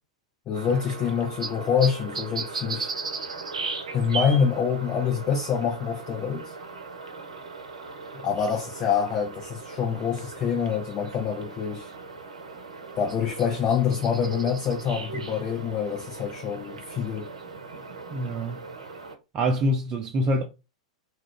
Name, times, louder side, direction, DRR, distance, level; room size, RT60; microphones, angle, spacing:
voice 1, 0.5-2.9 3.9-6.5 8.2-11.9 13.0-17.3, left 7 dB, 30° left, 0.6 m, -26 dB
sound 1, 0.5-19.2, right 4 dB, 70° right, 0.6 m, -37 dB
voice 2, 18.1-18.6 19.3-20.4, equal, 25° right, 0.4 m, -25 dB
2.3 x 2.3 x 3.4 m
figure-of-eight pair, 95°, 3 cm